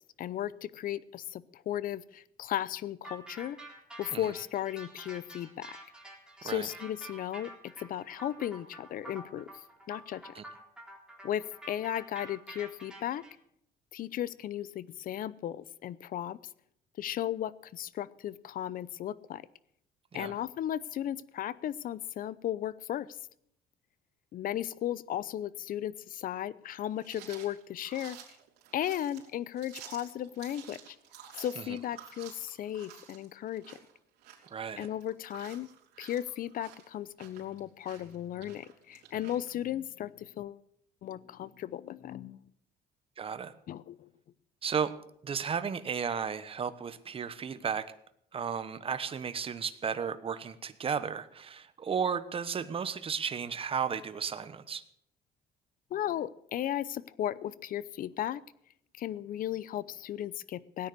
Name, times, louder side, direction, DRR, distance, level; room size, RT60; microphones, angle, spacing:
voice 1, 0.2-3.6 4.0-5.8 6.4-9.5 9.9-10.3 11.2-13.2 13.9-16.4 17.0-19.4 20.1-23.1 24.3-28.2 28.7-31.0 31.4-33.8 34.8-35.7 36.0-40.6 41.0-42.4 43.7-44.1 55.9-58.4 58.9-60.9, left 11 dB, 55° left, 20 dB, 0.7 m, -35 dB
sound 1, 3.0-13.3, right 1 dB, 5° right, 3.7 m, -48 dB
sound 2, 27.0-39.5, right 10 dB, 80° right, 3.8 m, -52 dB
voice 2, 34.5-34.9 43.2-43.5 44.6-44.9 45.2-47.9 48.3-54.8, right 6 dB, 35° right, 12 dB, 1.1 m, -34 dB
18.0 x 9.7 x 6.7 m, 0.71 s
cardioid pair, 110°, 17 cm